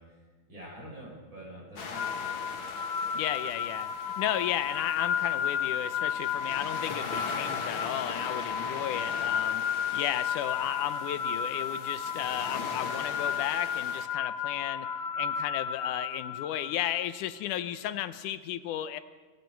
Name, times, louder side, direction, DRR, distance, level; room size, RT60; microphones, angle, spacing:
voice 1, 0.0-2.5, right 1 dB, 40° right, -4 dB, 5.7 m, -47 dB
sound 1, 1.8-14.1, left 5 dB, 45° left, 2.2 m, -41 dB
sound 2, 1.9-17.1, left 7 dB, 65° left, 2.5 m, -33 dB
voice 2, 3.1-9.6 9.9-14.9 15.2-19.0, left 12 dB, 90° left, 12 dB, 2.4 m, -34 dB
29.5 x 23.0 x 4.6 m, 1.4 s
omnidirectional pair, 3.5 m